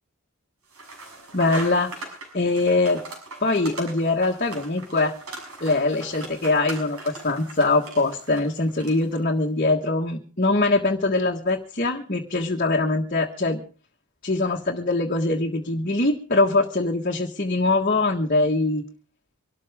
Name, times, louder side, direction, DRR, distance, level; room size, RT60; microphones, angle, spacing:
sound 1, 0.7-9.2, right 2 dB, 80° right, 6.7 m, -40 dB
voice 1, 1.3-2.0 2.3-3.0 3.4-5.1 5.6-13.6 14.2-18.8, left 2 dB, 40° left, 0 dB, 1.6 m, -23 dB
25.0 x 13.0 x 3.6 m, 0.38 s
head